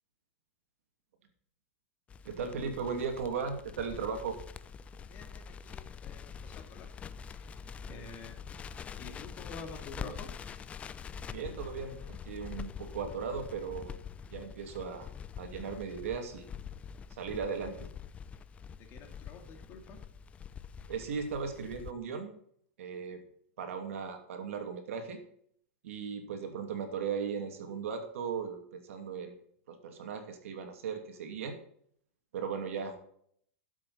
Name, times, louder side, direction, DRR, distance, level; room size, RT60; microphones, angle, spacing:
Crackle, 2.1-21.9, left 7 dB, 15° left, 0.5 m, -45 dB
voice 1, 2.2-4.4 11.3-13.9 14.3-15.1 15.4-16.5 17.2-17.7 20.9-22.3 22.8-23.2 23.6-25.2 25.8-29.3 29.7-31.5 32.3-33.0, right 6 dB, 80° right, 6 dB, 2.6 m, -37 dB
voice 2, 5.1-6.9 7.3-7.6 7.9-8.4 9.0-10.3 10.6-10.7 18.8-20.0, left 3 dB, 35° left, 4 dB, 2.4 m, -49 dB
13.5 x 7.7 x 4.3 m, 0.65 s
supercardioid pair, 145°, 7 cm